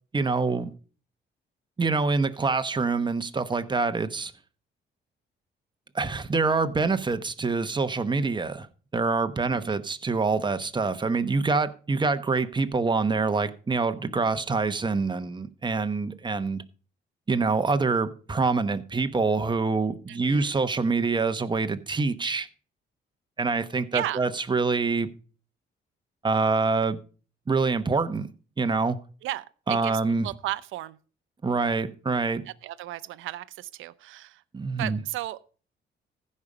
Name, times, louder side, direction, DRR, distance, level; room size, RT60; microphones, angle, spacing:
voice 1, 0.1-0.7 1.8-4.3 5.9-8.7 8.9-16.6 17.3-22.5 23.4-25.1 26.2-27.0 27.5-28.3 28.6-29.0 29.7-30.3 31.4-32.4 34.5-35.0, right 4 dB, 25° right, 1.0 m, -25 dB
voice 2, 9.4-9.8 20.1-20.6 23.9-24.2 29.2-31.0 32.5-34.4 34.8-35.4, right 15 dB, 85° right, 0.6 m, -35 dB
15.0 x 5.5 x 4.9 m
cardioid pair, 90°, 20 cm